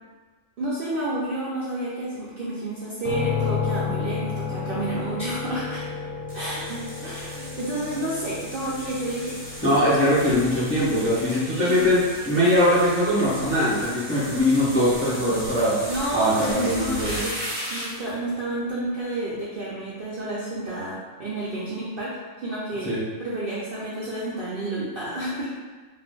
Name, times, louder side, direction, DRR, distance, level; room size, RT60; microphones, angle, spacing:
voice 1, 0.6-5.8 6.3-9.4 11.4-11.9 15.9-17.3 17.7-22.2 22.4-22.9 23.2-25.5, right 1 dB, 60° right, -8 dB, 0.6 m, -30 dB
sound 1, 3.0-16.8, left 6 dB, 75° left, 1.0 m, -34 dB
sound 2, 6.3-18.1, equal, 25° right, 0.8 m, -36 dB
voice 2, 9.6-15.8 16.1-17.2 22.8-23.0, left 1 dB, 10° left, -10 dB, 0.7 m, -21 dB
2.5 x 2.3 x 3.6 m, 1.4 s
omnidirectional pair, 1.4 m